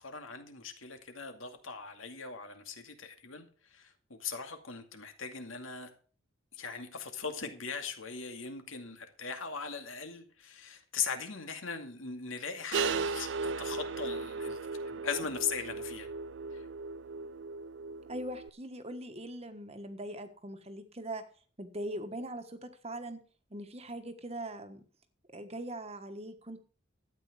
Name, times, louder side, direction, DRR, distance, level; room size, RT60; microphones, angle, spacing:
voice 1, 0.0-5.9 6.6-14.6 14.8-16.1 16.5-16.7, left 6 dB, 80° left, 6 dB, 2.3 m, -40 dB
sound 1, 12.7-18.5, right 4 dB, 60° right, 0.5 m, -36 dB
voice 2, 18.1-21.2 21.6-23.2 23.5-24.8 25.3-26.6, right 1 dB, 30° right, 9 dB, 1.4 m, -41 dB
13.0 x 8.8 x 4.9 m, 0.41 s
head